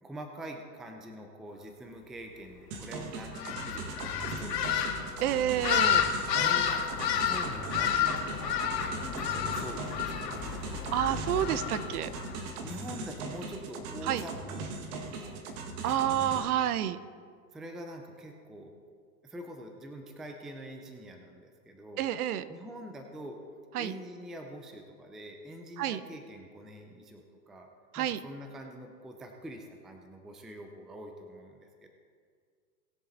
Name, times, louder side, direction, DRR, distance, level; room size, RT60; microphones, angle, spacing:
voice 1, 0.0-5.4 6.4-10.6 12.6-14.7 15.0-16.1 17.5-18.7 19.2-22.1 22.5-23.4 23.8-27.7 28.0-31.9, equal, ahead, 4 dB, 0.4 m, -45 dB
sound 1, 2.7-16.4, right 3 dB, 40° right, 1.8 m, -40 dB
sound 2, 3.3-12.4, left 8 dB, 75° left, 2.1 m, -31 dB
voice 2, 5.2-6.1 10.9-12.1 14.1-14.2 15.8-17.0 22.0-22.4 23.7-23.9 25.8-26.0 27.9-28.2, right 11 dB, 60° right, 14 dB, 0.8 m, -29 dB
19.5 x 6.9 x 4.0 m, 2.1 s
hypercardioid pair, 115°, 49 cm